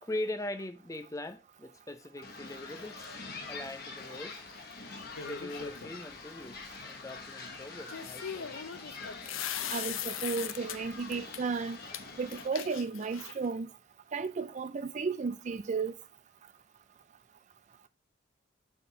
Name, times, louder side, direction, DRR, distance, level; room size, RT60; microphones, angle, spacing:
voice 1, 0.0-4.4 5.2-8.8, left 1 dB, 15° left, 0.5 m, -41 dB
sound 1, 2.2-12.5, left 4 dB, 50° left, 1.3 m, -45 dB
sound 2, 5.2-5.9 7.9-10.8 11.1-11.4 11.9-12.0 12.3-13.5, left 9 dB, 80° left, 0.6 m, -39 dB
voice 2, 9.7-11.9 12.2-13.7 14.1-15.9, right 4 dB, 35° right, 0.3 m, -34 dB
6.9 x 3.6 x 5.0 m
head